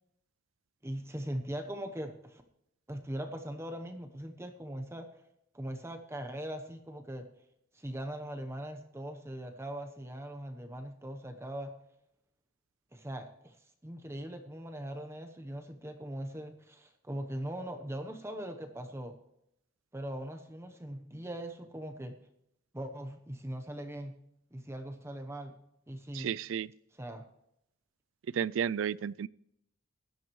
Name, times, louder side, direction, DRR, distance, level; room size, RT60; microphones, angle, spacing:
voice 1, 0.8-2.4 2.9-5.1 5.5-7.3 7.7-11.7 12.9-13.6 13.8-19.2 19.9-22.2 22.7-24.1 24.5-25.5 25.9-26.3 26.9-27.3, right 1 dB, 15° right, 0.9 m, -40 dB
voice 2, 26.1-26.7 28.3-29.3, right 8 dB, 70° right, 0.3 m, -32 dB
17.0 x 12.0 x 3.1 m
head